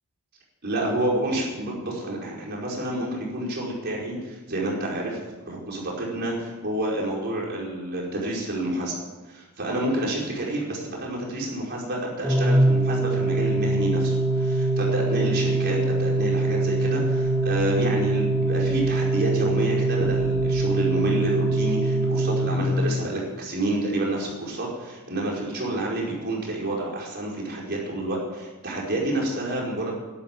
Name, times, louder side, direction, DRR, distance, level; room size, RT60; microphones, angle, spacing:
voice 1, 0.6-8.9 9.3-29.9, right 1 dB, 50° right, -3 dB, 5.0 m, -29 dB
Organ, 12.2-23.1, right 2 dB, 5° right, 1.1 m, -23 dB
12.5 x 11.5 x 9.2 m, 1.2 s
head